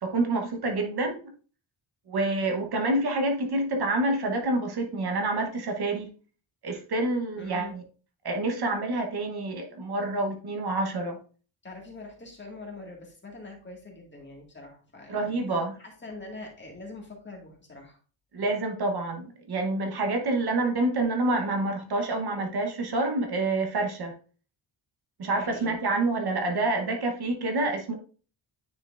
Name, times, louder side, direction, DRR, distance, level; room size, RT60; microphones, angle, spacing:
voice 1, 0.0-1.3 2.1-6.1 6.6-7.8 8.2-11.2 15.1-15.8 18.3-24.1 25.2-28.0, right 2 dB, 55° right, 1.0 m, -27 dB
voice 2, 7.4-7.8 11.6-15.4 15.8-18.0 25.3-25.8, left 3 dB, 25° left, 1.8 m, -43 dB
9.5 x 4.5 x 2.4 m
wide cardioid pair, 135°, 47 cm